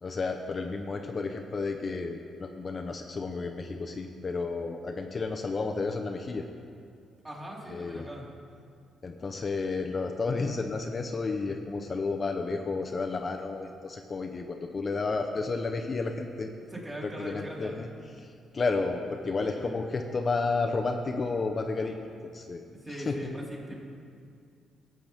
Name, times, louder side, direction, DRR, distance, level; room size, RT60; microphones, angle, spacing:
voice 1, 0.0-6.4 7.7-8.1 9.0-16.5 17.0-17.9 18.2-22.0 22.2-22.6 22.9-23.3, left 3 dB, 35° left, 3 dB, 0.7 m, -32 dB
voice 2, 7.2-8.2 16.7-17.8 19.6-19.8 22.7-23.7, right 1 dB, 20° right, -5 dB, 3.0 m, -40 dB
17.0 x 7.7 x 3.5 m, 2.4 s
cardioid pair, 90°, 0 cm